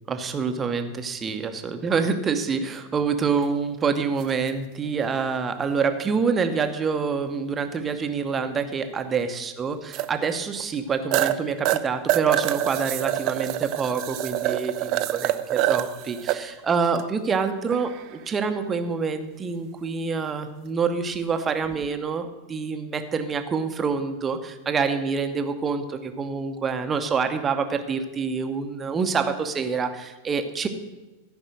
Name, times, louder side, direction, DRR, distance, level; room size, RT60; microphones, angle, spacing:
voice 1, 0.1-30.7, right 5 dB, 20° right, 7 dB, 0.9 m, -26 dB
sound 1, 4.2-4.3 6.8-6.9 9.9-10.1 10.6-10.7 11.1-11.4 11.6-16.4 16.9-17.0 17.7-18.1 21.7-21.9, right 15 dB, 40° right, 0.5 m, -26 dB
14.0 x 5.3 x 6.4 m, 1.2 s
figure-of-eight pair, 90°, 0 cm